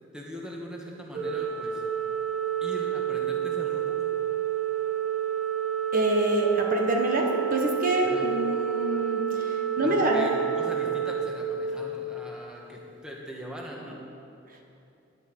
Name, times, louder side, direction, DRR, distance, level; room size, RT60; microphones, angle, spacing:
voice 1, 0.1-1.8 2.6-4.0 8.0-8.3 9.8-14.0, equal, 5° right, -2 dB, 1.6 m, -40 dB
Organ, 1.1-12.2, right 9 dB, 65° right, 2.0 m, -29 dB
voice 2, 5.9-10.3, right 1 dB, 45° right, 1 dB, 1.3 m, -26 dB
10.5 x 8.7 x 9.1 m, 2.7 s
head